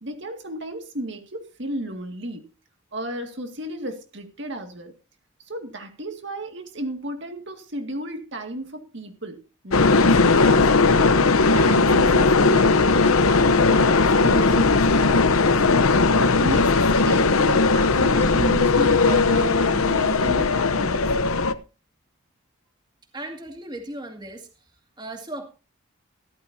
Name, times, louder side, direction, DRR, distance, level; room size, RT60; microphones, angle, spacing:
voice 1, 0.0-2.5 2.9-4.9 5.5-10.7 11.0-15.8 16.1-21.1, right 1 dB, 55° right, 5 dB, 2.1 m, -34 dB
sound 1, 9.7-21.5, left 3 dB, 85° left, 0.9 m, -18 dB
voice 2, 23.1-24.5 25.0-25.5, right 1 dB, 20° right, 4 dB, 2.2 m, -36 dB
15.0 x 14.0 x 2.8 m, 0.32 s
head